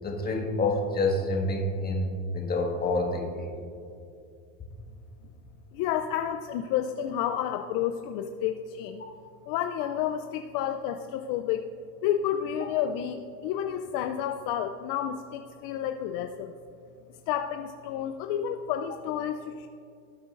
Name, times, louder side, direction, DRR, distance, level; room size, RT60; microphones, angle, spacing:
voice 1, 0.0-3.5, left 2 dB, 25° left, 0 dB, 1.7 m, -28 dB
voice 2, 5.7-9.0 9.5-11.7 12.0-16.5 17.3-19.7, left 10 dB, 60° left, 6 dB, 0.6 m, -30 dB
18.0 x 7.8 x 2.6 m, 2.4 s
supercardioid pair, 115°, 38 cm